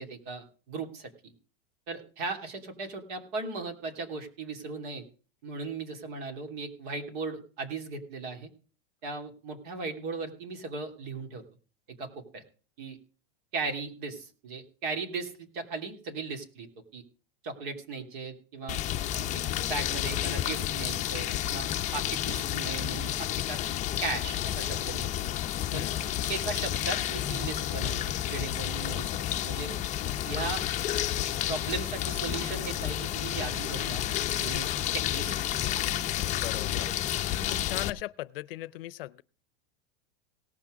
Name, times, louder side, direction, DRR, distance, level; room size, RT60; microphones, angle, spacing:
voice 1, 0.0-1.3 1.9-5.0 5.4-8.5 9.0-11.4 11.9-12.4 12.8-13.0 13.5-16.7 16.9-17.0 17.4-18.8 19.1-23.6 24.0-25.3 25.7-25.9 26.3-29.1 29.4-29.7 30.2-30.6 31.2-34.0 34.3-35.6, right 4 dB, 60° right, 3.1 m, -37 dB
sound 1, 18.7-37.9, left 12 dB, 25° left, 0.6 m, -31 dB
voice 2, 36.2-36.9 37.5-39.2, left 16 dB, 75° left, 0.6 m, -38 dB
18.0 x 6.0 x 5.1 m
supercardioid pair, 140°, 29 cm